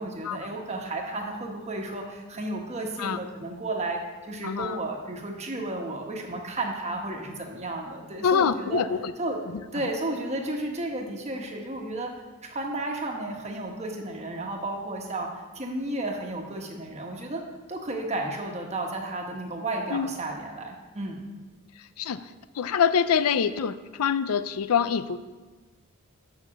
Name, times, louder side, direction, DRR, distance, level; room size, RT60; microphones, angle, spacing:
voice 1, 0.0-4.0 4.3-8.8 9.2-9.5 9.7-12.1 12.4-15.3 15.5-17.4 17.7-21.2, right 2 dB, 30° right, 1 dB, 1.2 m, -33 dB
voice 2, 4.4-4.8 8.2-9.1 19.9-20.1 22.0-22.2 22.6-25.2, left 7 dB, 80° left, 13 dB, 0.4 m, -25 dB
7.0 x 5.8 x 7.1 m, 1.3 s
head